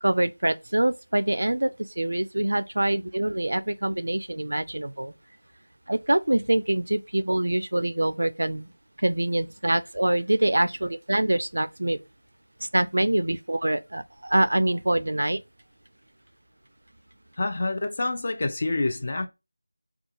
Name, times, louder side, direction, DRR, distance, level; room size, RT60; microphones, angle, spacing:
voice 1, 0.0-5.1 5.9-8.7 9.0-12.0 12.7-15.4, right 1 dB, 70° right, 0.3 m, -25 dB
voice 2, 17.4-19.3, left 2 dB, 35° left, 0.4 m, -27 dB
2.3 x 2.3 x 2.8 m
figure-of-eight pair, 170°, 0 cm